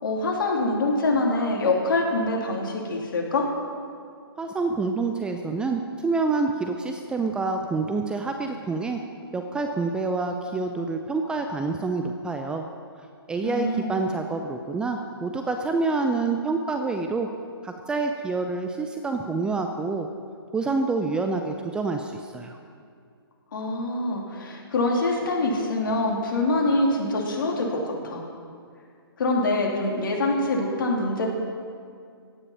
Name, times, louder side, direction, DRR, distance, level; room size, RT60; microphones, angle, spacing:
voice 1, 0.0-3.5 13.4-14.0 23.5-28.2 29.2-31.3, left 2 dB, 55° left, 0 dB, 2.9 m, -25 dB
voice 2, 4.4-9.0 9.3-12.6 13.3-17.3 17.6-20.1 20.5-22.6, right 3 dB, 5° right, 4 dB, 0.5 m, -27 dB
16.0 x 9.8 x 5.5 m, 2.3 s
figure-of-eight pair, 135°, 13 cm